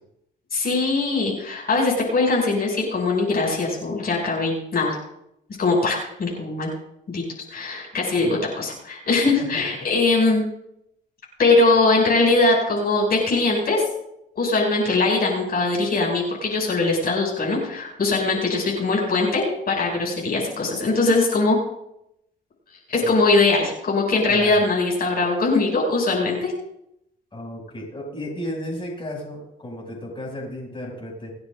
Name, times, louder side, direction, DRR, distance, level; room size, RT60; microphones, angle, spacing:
voice 1, 0.5-5.0 5.6-6.7 7.1-7.2 7.5-10.4 11.4-13.8 14.4-21.6 22.9-26.5, left 3 dB, 50° left, -3 dB, 6.4 m, -21 dB
voice 2, 24.3-24.6 27.3-31.3, left 1 dB, 25° left, -3 dB, 6.6 m, -34 dB
27.5 x 9.6 x 2.6 m, 0.79 s
cardioid pair, 90°, 20 cm